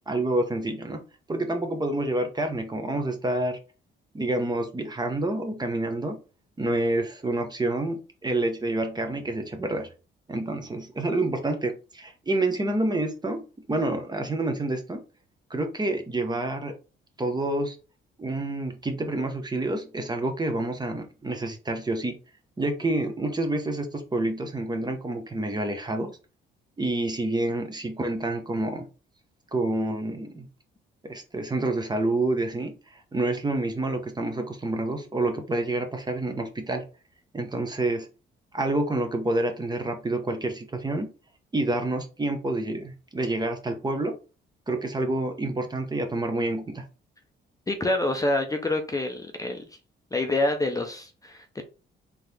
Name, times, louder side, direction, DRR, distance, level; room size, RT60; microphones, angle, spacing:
voice 1, 0.1-1.0 1.3-3.6 4.1-6.2 6.6-9.9 10.3-15.0 15.5-16.7 17.2-17.8 18.2-22.1 22.6-26.1 26.8-28.9 29.5-30.5 31.0-36.8 37.3-38.1 38.5-41.1 41.5-44.2 44.7-46.8, right 2 dB, 20° right, 6 dB, 0.8 m, -28 dB
voice 2, 47.7-49.6 50.1-51.6, left 2 dB, 15° left, 5 dB, 0.6 m, -27 dB
3.7 x 2.9 x 3.3 m, 0.33 s
cardioid pair, 90°, 20 cm